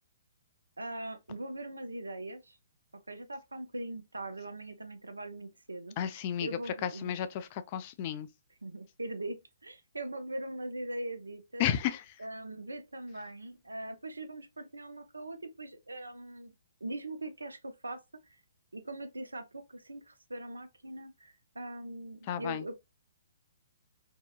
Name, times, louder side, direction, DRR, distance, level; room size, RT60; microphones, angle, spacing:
voice 1, 0.8-2.6 2.9-7.1 8.6-11.7 12.2-16.5 16.8-18.0 18.3-18.4 18.7-22.8, right 1 dB, 85° right, 0.5 m, -41 dB
voice 2, 6.0-6.5 6.8-8.3 11.6-12.0 22.3-22.6, left 10 dB, 35° left, 0.3 m, -32 dB
2.7 x 2.1 x 2.3 m
figure-of-eight pair, 125°, 0 cm